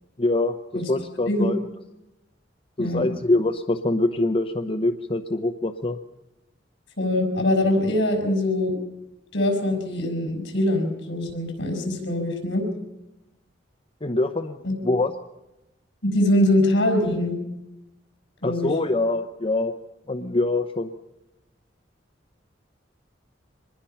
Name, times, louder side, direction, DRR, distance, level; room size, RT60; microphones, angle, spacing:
voice 1, 0.2-1.6 2.8-6.0 14.0-14.6 14.8-15.1 18.4-19.7 20.1-20.9, left 2 dB, 30° left, 6 dB, 0.8 m, -24 dB
voice 2, 7.0-8.8 9.3-12.7 14.6-14.7 16.0-17.4 18.4-18.7, left 1 dB, 75° left, 3 dB, 5.6 m, -23 dB
25.0 x 20.5 x 5.7 m, 0.96 s
head